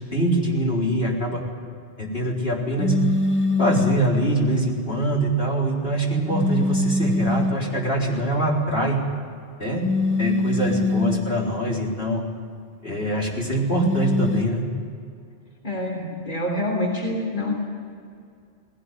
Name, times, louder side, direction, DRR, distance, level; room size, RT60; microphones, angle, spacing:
voice 1, 0.1-1.4 2.0-3.0 3.6-9.0 9.6-9.9 10.2-12.2 12.8-14.7, right 1 dB, 55° left, -3 dB, 4.5 m, -23 dB
sound 1, 2.8-4.1 6.3-7.7 9.8-11.3 13.8-14.4, left 2 dB, 10° left, 1.3 m, -23 dB
voice 2, 15.6-17.5, left 1 dB, 40° left, -1 dB, 3.7 m, -26 dB
19.0 x 18.0 x 9.4 m, 2.4 s
omnidirectional pair, 1.2 m